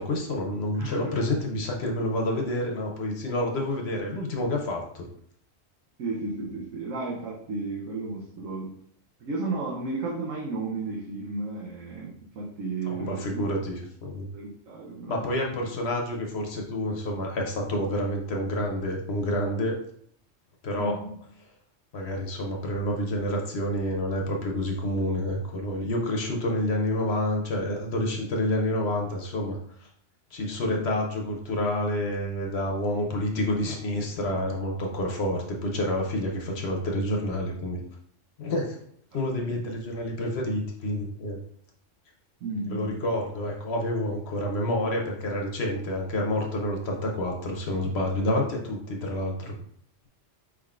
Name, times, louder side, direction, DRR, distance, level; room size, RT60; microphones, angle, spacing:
voice 1, 0.0-5.1 12.9-14.3 15.1-19.8 20.6-20.9 21.9-29.9 30.3-37.8 38.4-38.8 39.1-41.4 42.7-49.5, left 1 dB, 60° left, 1 dB, 1.0 m, -28 dB
voice 2, 0.8-1.1 6.0-8.7 9.2-13.4 14.3-15.3 20.8-21.2 30.6-30.8 39.5-39.6 42.4-43.0, right 3 dB, 90° right, -2 dB, 1.2 m, -33 dB
4.9 x 3.6 x 2.4 m, 0.65 s
omnidirectional pair, 1.3 m